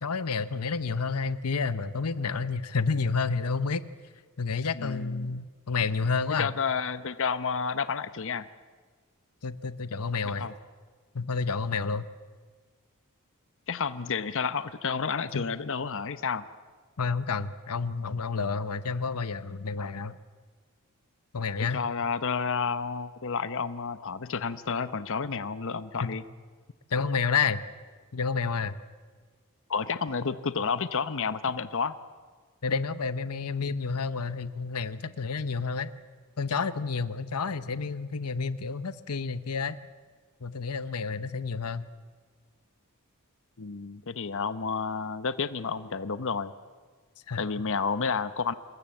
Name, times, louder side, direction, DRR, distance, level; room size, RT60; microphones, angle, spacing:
voice 1, 0.0-3.8 4.4-6.5 9.4-10.5 11.1-12.1 15.3-15.4 17.0-20.2 21.3-21.8 26.0-26.1 26.9-27.6 28.1-28.7 32.6-35.9 36.4-39.8 40.4-41.9 47.3-47.4, left 5 dB, 90° left, 14 dB, 0.9 m, -30 dB
voice 2, 4.7-5.3 6.4-8.5 10.2-10.5 13.7-16.5 21.6-26.2 29.7-31.9 43.6-46.5 47.4-48.5, left 5 dB, 60° left, 13 dB, 0.9 m, -30 dB
27.0 x 21.0 x 7.8 m, 1.5 s
head